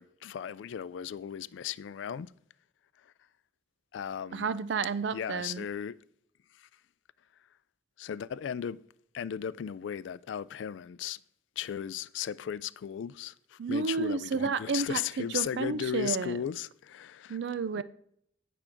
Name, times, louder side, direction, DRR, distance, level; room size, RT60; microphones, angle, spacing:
voice 1, 0.0-2.3 3.0-3.1 3.9-4.5 5.1-6.0 6.5-6.7 8.0-8.8 9.1-11.2 11.6-17.4 17.8-17.9, left 9 dB, 90° left, 0.3 m, -36 dB
voice 2, 4.3-5.7 13.6-16.4 17.3-17.8, right 5 dB, 75° right, 0.4 m, -31 dB
9.1 x 4.9 x 5.9 m
head